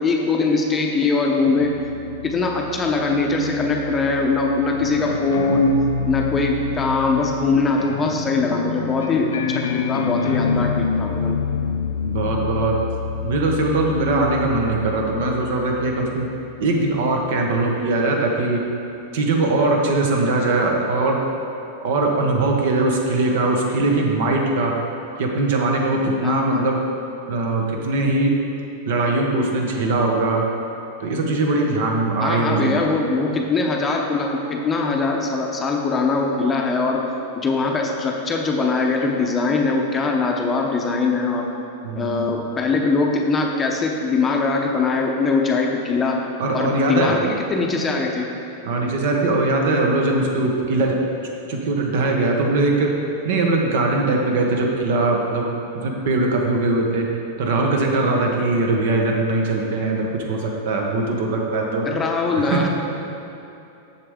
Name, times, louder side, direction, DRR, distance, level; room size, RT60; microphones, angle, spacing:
voice 1, 0.0-1.8 2.2-5.8 6.1-11.4 26.2-26.6 32.2-37.1 37.4-41.5 42.0-46.2 46.5-48.3 61.8-62.7, left 3 dB, 20° left, 0 dB, 0.6 m, -21 dB
sound 1, 1.6-16.9, left 6 dB, 90° left, 0.4 m, -28 dB
voice 2, 12.0-12.8 13.2-16.3 16.6-18.6 19.1-21.2 21.8-24.7 25.2-26.8 27.3-28.4 28.9-30.4 31.0-32.7 41.8-42.3 46.4-47.2 48.6-51.0 51.5-52.9 53.2-55.5 55.8-57.1 57.4-61.9 62.3-62.7, right 2 dB, 65° right, 1 dB, 1.1 m, -21 dB
6.8 x 6.7 x 3.6 m, 2.9 s
supercardioid pair, 140°, 0 cm